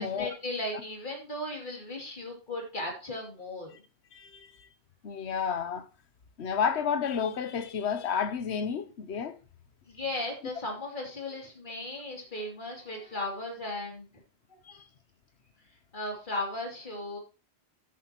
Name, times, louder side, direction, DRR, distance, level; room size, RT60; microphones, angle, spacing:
voice 1, 0.0-3.7 9.9-14.1 14.5-14.8 15.9-17.2, left 1 dB, 45° left, 3.0 m, -36 dB
voice 2, 4.1-4.7 5.0-5.9 6.4-9.4 14.6-14.9, left 7 dB, 80° left, 1.1 m, -31 dB
13.0 x 7.5 x 2.9 m
omnidirectional pair, 1.1 m